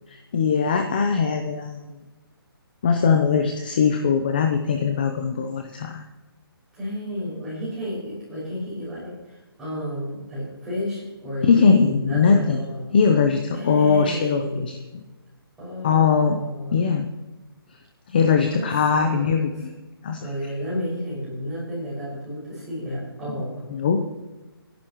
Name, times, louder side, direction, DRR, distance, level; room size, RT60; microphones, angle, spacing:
voice 1, 0.1-1.8 2.8-6.0 11.4-12.6 12.9-15.0 15.8-16.4 16.7-17.1 18.1-19.7 20.0-20.3 23.3-23.4 23.7-24.0, left 6 dB, 20° left, 5 dB, 0.7 m, -21 dB
voice 2, 6.7-12.9 13.5-14.8 15.6-16.9 18.5-19.3 20.2-23.6, equal, 5° right, -9 dB, 6.0 m, -32 dB
26.0 x 11.5 x 3.1 m, 1.1 s
hypercardioid pair, 175°, 13 cm